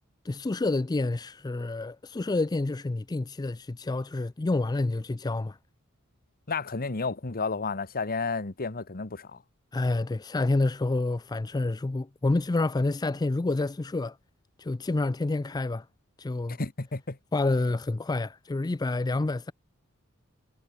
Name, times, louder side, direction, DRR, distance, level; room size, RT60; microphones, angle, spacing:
voice 1, 0.2-5.6 9.7-14.2 14.6-15.9 16.2-16.6 17.3-19.5, left 2 dB, 20° left, 0.4 m, -28 dB
voice 2, 6.5-9.4 16.5-17.2, left 4 dB, 45° left, 1.3 m, -32 dB
head